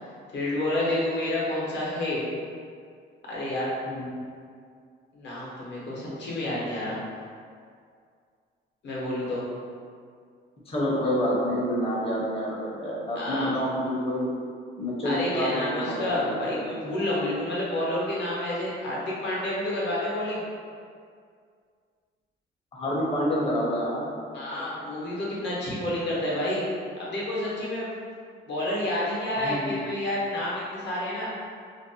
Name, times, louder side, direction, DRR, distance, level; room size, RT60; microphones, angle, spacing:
voice 1, 0.3-2.2 3.3-3.7 5.1-7.0 8.8-9.4 13.1-13.5 15.0-20.4 24.3-26.7 27.0-27.9 28.5-31.3, left 1 dB, 60° left, -6 dB, 0.9 m, -29 dB
voice 2, 10.7-14.3 14.8-16.4 22.7-24.1 29.4-29.9, equal, 30° left, -5 dB, 0.6 m, -28 dB
2.5 x 2.0 x 2.7 m, 2.2 s
cardioid pair, 90°, 20 cm